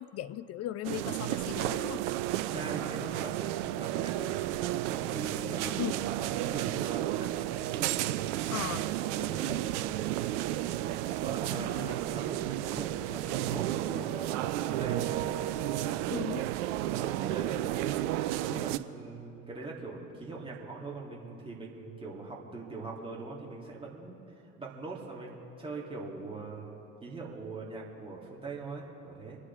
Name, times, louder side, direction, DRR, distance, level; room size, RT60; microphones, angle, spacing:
voice 1, 0.0-2.0 5.8-5.9 8.5-8.9 11.5-11.9 16.1-16.5, left 12 dB, 40° left, 14 dB, 0.7 m, -37 dB
sound 1, 0.8-18.8, right 14 dB, 60° right, 0.7 m, -32 dB
voice 2, 2.3-3.4 3.7-7.3 7.8-8.0 9.2-9.6 11.2-15.3 15.5-16.0 16.9-18.0 18.4-24.2 24.6-29.4, right 3 dB, 15° right, -4 dB, 3.4 m, -42 dB
27.0 x 9.8 x 3.8 m, 2.8 s
figure-of-eight pair, 65°, 40 cm